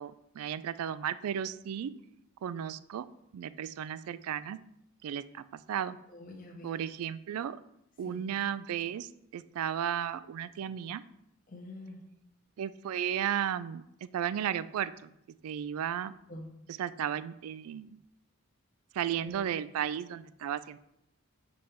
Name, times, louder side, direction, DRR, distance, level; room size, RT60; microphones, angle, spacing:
voice 1, 0.0-1.9 2.4-3.0 3.3-4.6 5.0-6.0 6.6-7.6 8.0-11.0 12.6-13.8 14.1-15.1 15.4-16.1 16.8-18.0 18.9-20.8, right 9 dB, 80° right, 16 dB, 0.3 m, -34 dB
voice 2, 6.1-6.8 8.0-8.2 11.5-12.1 16.3-16.5 19.2-19.4, left 1 dB, 40° left, 1 dB, 1.0 m, -46 dB
5.3 x 4.4 x 5.6 m, 0.80 s
head